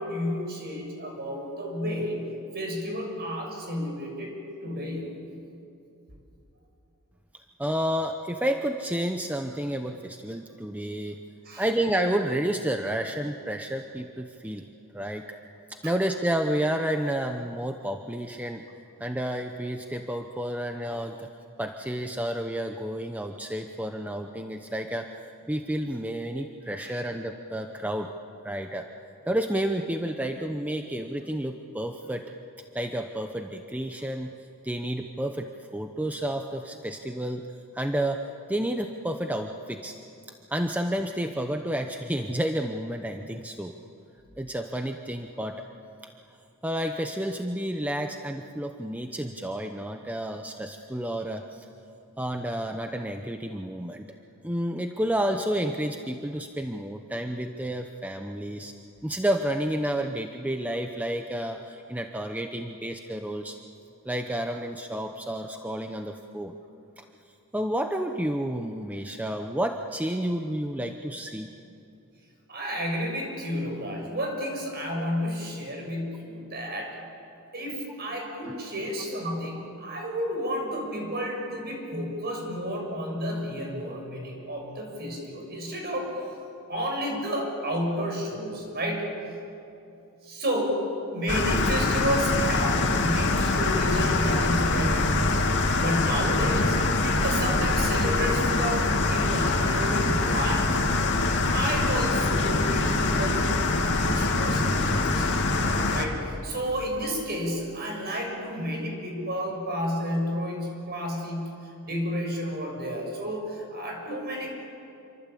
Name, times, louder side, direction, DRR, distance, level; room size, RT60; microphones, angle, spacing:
voice 1, 0.0-2.3 2.5-4.3 4.6-5.2 11.4-11.6 26.8-27.0 72.5-76.9 77.5-86.2 86.7-89.1 90.2-90.8 91.1-95.3 95.8-100.7 101.5-105.2 105.9-111.6 111.8-114.5, equal, 45° right, 1 dB, 6.9 m, -31 dB
voice 2, 7.6-11.2 11.6-14.7 14.9-15.2 15.7-18.6 19.0-21.3 21.6-28.1 28.4-28.9 29.3-32.2 32.7-34.3 34.6-37.5 37.7-38.2 38.5-39.9 40.5-43.7 44.4-45.7 46.6-51.7 52.2-54.1 54.4-58.7 59.0-63.6 64.0-66.5 67.0-67.1 67.5-71.5 78.5-78.6, right 1 dB, 5° right, 5 dB, 0.9 m, -30 dB
sound 1, 91.3-106.1, left 2 dB, 55° left, 2.6 m, -24 dB
27.5 x 25.0 x 8.5 m, 2.8 s
head